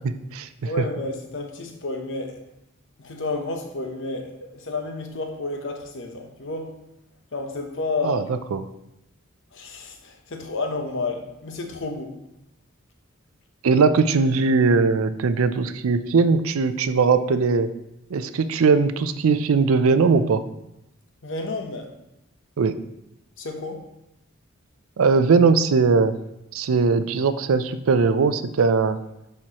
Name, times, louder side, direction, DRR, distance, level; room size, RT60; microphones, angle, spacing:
voice 1, 0.0-0.5 8.0-8.2 8.5-8.6 13.6-17.7 18.1-20.4 22.6-22.8 25.0-26.1 26.5-29.0, right 4 dB, 75° right, 11 dB, 0.4 m, -20 dB
voice 2, 0.6-2.4 3.0-6.7 7.3-8.2 9.5-12.2 21.2-21.9 23.4-23.8, left 2 dB, 60° left, 4 dB, 0.9 m, -31 dB
10.5 x 4.4 x 2.9 m, 0.87 s
head